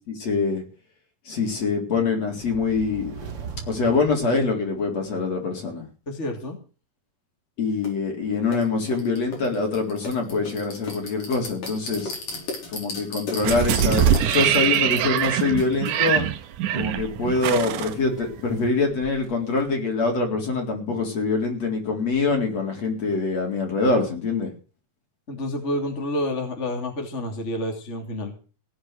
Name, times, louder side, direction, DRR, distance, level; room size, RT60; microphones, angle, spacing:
voice 1, 0.1-0.6 1.3-3.3 3.7-5.8 7.6-12.2 12.7-16.2 16.7-24.5, left 4 dB, 55° left, 1 dB, 5.1 m, -24 dB
sound 1, 2.3-5.0, right 6 dB, 45° right, 2.8 m, -39 dB
voice 2, 6.1-6.6 25.3-28.3, left 1 dB, 20° left, 2 dB, 2.9 m, -29 dB
sound 2, 7.8-7.9 8.5-16.1, left 3 dB, 75° left, 6.6 m, -36 dB
sound 3, 13.4-18.7 19.0-19.1, right 10 dB, 85° right, 2.6 m, -23 dB
17.5 x 9.5 x 6.7 m, 0.37 s
omnidirectional pair, 3.7 m